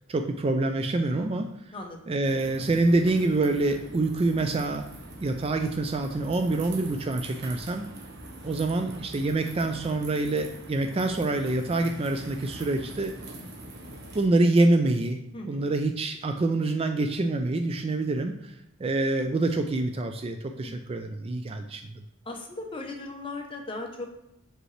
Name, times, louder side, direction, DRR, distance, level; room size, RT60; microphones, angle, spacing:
voice 1, 0.1-1.5 2.1-4.8 5.2-7.8 8.4-13.1 14.1-15.2 15.5-18.5 18.8-22.0, right 2 dB, 25° right, 6 dB, 0.3 m, -26 dB
voice 2, 1.1-1.4 1.7-2.0 15.3-15.7 20.5-20.8 22.2-24.1, left 2 dB, 25° left, 2 dB, 0.9 m, -38 dB
sound 1, 2.2-14.3, right 1 dB, 50° right, 1.0 m, -43 dB
6.0 x 5.1 x 3.3 m, 0.87 s
head